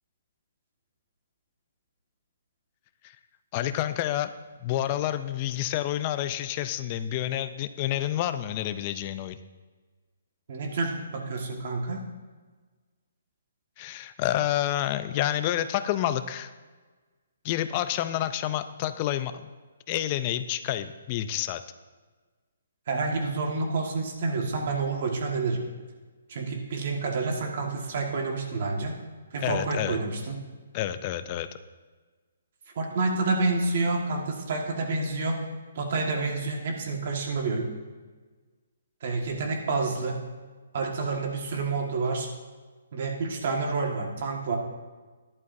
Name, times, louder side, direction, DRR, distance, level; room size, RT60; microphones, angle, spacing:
voice 1, 3.5-4.3 4.6-9.4 13.8-16.5 17.4-19.5 19.9-21.6 29.4-30.0 30.7-31.5, left 12 dB, 20° left, 12 dB, 0.3 m, -29 dB
voice 2, 10.5-12.0 22.9-25.6 26.3-28.9 29.3-30.4 32.7-35.4 35.7-37.7 39.0-40.2 40.7-42.3 42.9-44.6, right 3 dB, 40° right, 1 dB, 1.5 m, -28 dB
13.5 x 11.0 x 2.6 m, 1.4 s
hypercardioid pair, 175°, 0 cm